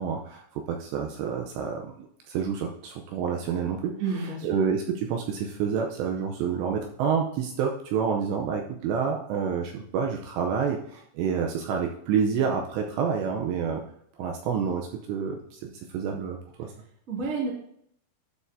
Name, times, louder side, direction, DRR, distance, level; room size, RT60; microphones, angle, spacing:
voice 1, 0.0-13.8 14.2-16.7, right 6 dB, 80° right, 2 dB, 2.6 m, -28 dB
voice 2, 4.0-4.5 17.1-17.5, right 4 dB, 55° right, -3 dB, 0.8 m, -29 dB
12.0 x 6.3 x 2.7 m, 0.69 s
omnidirectional pair, 5.6 m